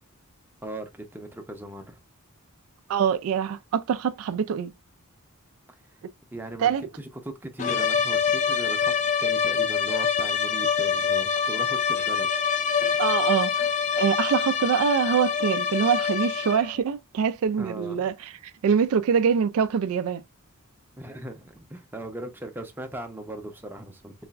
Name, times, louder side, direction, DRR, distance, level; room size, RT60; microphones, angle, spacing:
voice 1, 0.6-2.0 6.3-8.9 9.2-12.3 17.6-18.1 21.0-24.1, right 1 dB, 10° right, 0.6 m, -38 dB
voice 2, 2.9-4.7 6.6-6.8 13.0-13.7 14.0-18.1 18.6-20.2, right 7 dB, 70° right, 0.3 m, -24 dB
sound 1, 7.6-16.8, left 6 dB, 35° left, 0.3 m, -25 dB
3.9 x 2.4 x 2.3 m
head